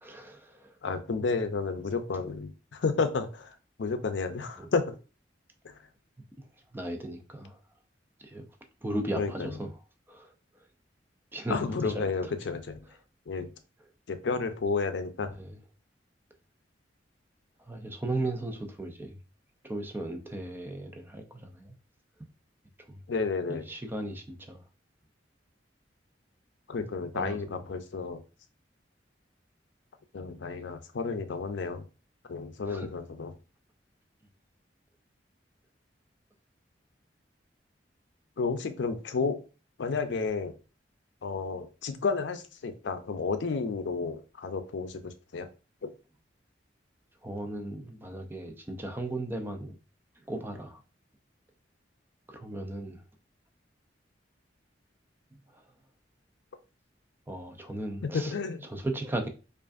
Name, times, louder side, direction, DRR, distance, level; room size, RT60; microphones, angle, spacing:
voice 1, 0.0-0.8 4.6-4.7 6.4-6.5 6.7-7.6 8.2-8.5 8.8-9.8 10.1-10.3 11.3-12.3 12.8-13.0 15.3-15.6 17.6-19.2 19.6-21.8 22.8-23.0 23.5-24.6 27.0-27.6 32.6-32.9 47.2-49.8 50.2-50.8 52.3-53.0 55.3-55.6 57.3-58.4 58.6-59.3, right 1 dB, 10° right, 0.5 m, -37 dB
voice 2, 0.8-3.5 3.8-5.0 9.2-9.5 11.5-12.8 13.3-13.5 14.1-15.3 23.1-23.7 26.7-28.2 30.1-31.8 32.3-33.3 38.4-39.4 39.8-40.5 41.2-45.5 45.8-45.9 58.0-58.6, left 4 dB, 75° left, 0.5 m, -31 dB
4.8 x 2.5 x 2.5 m
head